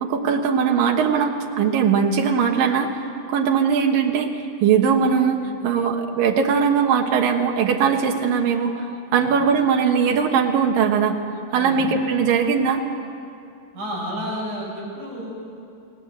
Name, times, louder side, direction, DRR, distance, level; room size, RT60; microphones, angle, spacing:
voice 1, 0.0-2.9 3.3-8.9 9.1-11.2 11.5-12.8, right 6 dB, 85° right, 2 dB, 3.1 m, -20 dB
voice 2, 13.7-15.3, equal, 65° right, -4 dB, 8.5 m, -31 dB
29.0 x 18.5 x 8.1 m, 2.6 s
omnidirectional pair, 3.8 m